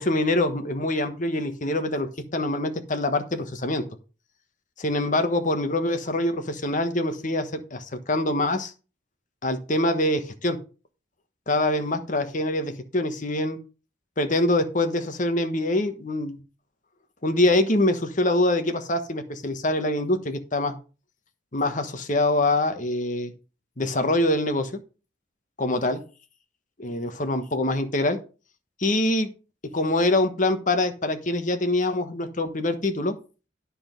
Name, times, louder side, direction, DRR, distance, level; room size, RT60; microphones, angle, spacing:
voice 1, 0.0-3.8 4.8-8.7 9.4-10.6 11.5-13.6 14.2-16.4 17.2-20.8 21.5-23.3 23.8-24.8 25.6-26.0 26.8-28.2 28.8-29.3 29.7-33.2, left 1 dB, 40° left, 8 dB, 1.2 m, -24 dB
9.8 x 6.2 x 5.2 m, 0.34 s
head